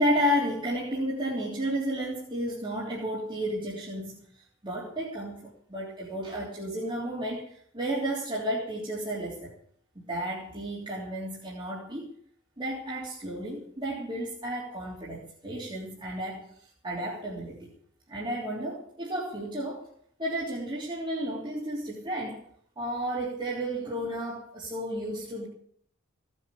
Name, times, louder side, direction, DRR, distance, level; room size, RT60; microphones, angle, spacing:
voice 1, 0.0-9.5 9.9-12.1 12.6-17.7 18.1-19.9 20.2-22.4 22.8-25.5, equal, 20° right, -7 dB, 3.3 m, -32 dB
17.5 x 7.7 x 8.5 m, 0.64 s
head